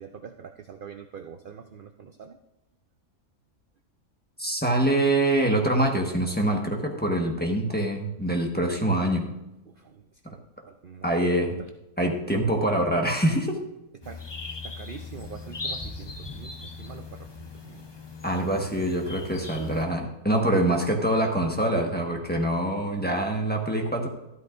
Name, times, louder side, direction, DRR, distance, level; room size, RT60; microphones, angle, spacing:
voice 1, 0.0-2.4 9.7-10.4 10.7-11.7 14.0-14.2 14.6-17.9, right 7 dB, 65° right, 5 dB, 0.5 m, -44 dB
voice 2, 4.4-9.3 11.0-11.6 12.0-13.6 18.2-24.1, right 1 dB, 5° left, 0 dB, 1.1 m, -25 dB
sound 1, 14.0-19.9, left 4 dB, 30° left, 0.5 m, -39 dB
13.0 x 12.0 x 2.5 m, 0.92 s
omnidirectional pair, 1.6 m